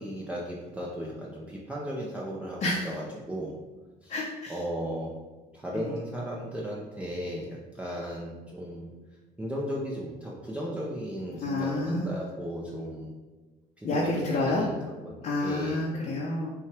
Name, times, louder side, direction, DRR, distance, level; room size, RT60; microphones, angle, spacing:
voice 1, 0.0-3.6 4.0-4.2 4.5-5.2 5.5-8.9 9.4-13.1 13.8-15.9, equal, 5° right, -5 dB, 0.6 m, -36 dB
voice 2, 4.1-4.5 11.4-12.0 13.8-14.6 15.2-16.5, left 2 dB, 50° left, -4 dB, 0.7 m, -28 dB
5.6 x 2.3 x 3.3 m, 1.2 s
cardioid pair, 110°, 17 cm